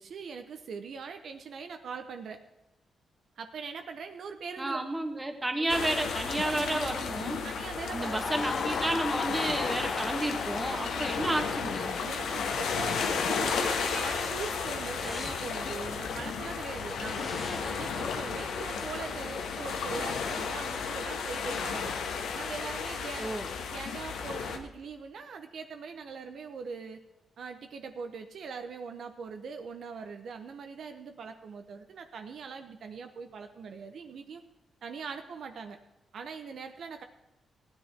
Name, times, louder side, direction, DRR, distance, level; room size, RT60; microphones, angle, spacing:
voice 1, 0.0-2.4 3.4-4.8 7.4-8.5 10.7-11.1 12.0-21.9 22.3-23.3 23.7-27.0 27.4-34.4 34.8-35.8 36.1-37.0, right 5 dB, 65° right, 6 dB, 1.0 m, -41 dB
voice 2, 4.6-7.4 7.9-12.0 23.2-23.5, right 1 dB, 15° right, 5 dB, 1.6 m, -31 dB
sound 1, 5.7-24.6, left 5 dB, 90° left, 1.5 m, -33 dB
Crowd, 7.8-12.6, left 5 dB, 45° left, 0.5 m, -37 dB
sound 2, 13.6-18.6, left 3 dB, 30° left, 1.0 m, -48 dB
16.0 x 9.8 x 4.5 m, 0.99 s
cardioid pair, 115°, 0 cm